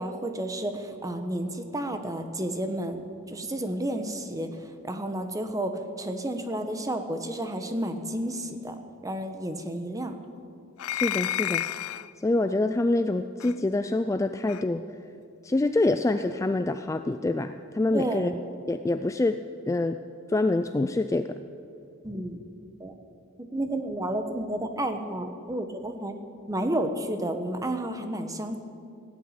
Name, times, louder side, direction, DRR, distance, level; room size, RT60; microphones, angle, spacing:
voice 1, 0.0-8.8 9.0-10.2 17.9-18.4 22.0-22.4 22.8-22.9 23.4-26.2 26.5-28.6, right 1 dB, 15° right, 7 dB, 1.1 m, -31 dB
sound 1, 10.8-12.1 13.4-13.5 14.5-14.6, left 12 dB, 85° left, 0.4 m, -30 dB
voice 2, 10.9-11.7 12.2-14.8 15.4-18.3 18.7-19.4 19.7-20.0 20.3-21.4, left 2 dB, 15° left, 9 dB, 0.3 m, -26 dB
16.5 x 8.8 x 8.8 m, 2.4 s
head